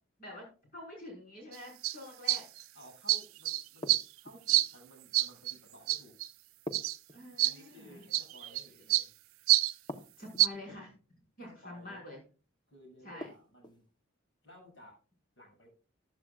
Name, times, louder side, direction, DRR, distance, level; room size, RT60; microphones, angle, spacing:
voice 1, 0.7-2.4 7.1-8.0 10.2-10.9 11.4-12.2 13.0-13.3, left 1 dB, 45° left, -2 dB, 5.5 m, -47 dB
sound 1, 1.5-1.6 1.8-2.0 2.3-2.6 3.1-4.0 4.5-4.7 5.1-5.5 5.9-6.3 6.7-7.0 7.4-7.5 8.1-8.6 8.9-9.0 9.5-9.7 10.4-10.5, right 17 dB, 85° right, 0.4 m, -27 dB
voice 2, 2.7-4.0 4.2-6.1 7.4-9.1 11.4-12.0 12.7-13.8 14.4-15.0 15.4-15.7, equal, 60° left, 0 dB, 7.4 m, -56 dB
sound 2, 3.8-4.6 6.7-7.7 9.9-10.6 13.2-13.8, equal, 20° left, 1.1 m, -45 dB
14.5 x 11.5 x 2.5 m, 0.35 s
head